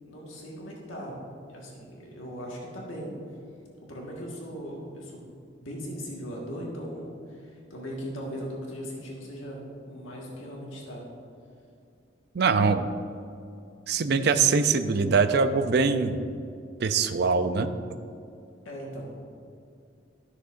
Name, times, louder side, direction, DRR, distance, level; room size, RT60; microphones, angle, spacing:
voice 1, 0.0-1.2 1.5-3.1 3.8-5.3 5.6-11.0 18.6-19.2, equal, 90° left, -3 dB, 1.6 m, -39 dB
voice 2, 12.3-12.9 13.9-16.2 16.8-17.7, right 5 dB, 55° right, 9 dB, 0.5 m, -23 dB
13.0 x 6.5 x 2.6 m, 2.5 s
head